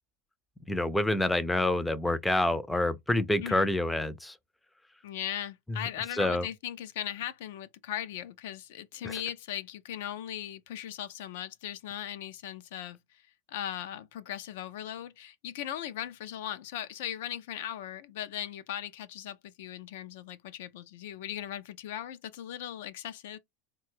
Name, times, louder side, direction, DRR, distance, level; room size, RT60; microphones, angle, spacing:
voice 1, 0.7-4.3 6.2-6.5 9.0-9.1, left 1 dB, 5° left, 0.5 m, -27 dB
voice 2, 3.4-3.8 5.0-13.2 13.5-23.4, left 11 dB, 70° left, 0.4 m, -38 dB
3.8 x 2.2 x 3.0 m
hypercardioid pair, 105°, 0 cm